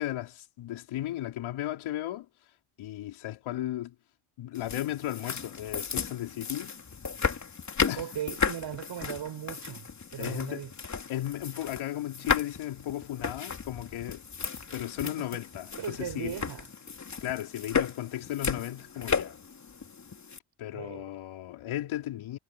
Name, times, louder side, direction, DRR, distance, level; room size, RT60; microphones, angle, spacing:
voice 1, 0.0-2.3 2.8-3.9 4.4-6.7 7.9-8.1 10.2-10.6 11.1-14.2 14.7-16.4 17.2-19.4 20.6-22.4, left 13 dB, 75° left, 4.7 m, -35 dB
sound 1, 4.6-20.4, left 6 dB, 35° left, 3.2 m, -34 dB
voice 2, 8.0-10.7 15.0-15.3 15.8-16.7 20.7-21.1, right 9 dB, 60° right, 7.3 m, -38 dB
supercardioid pair, 70°, 48 cm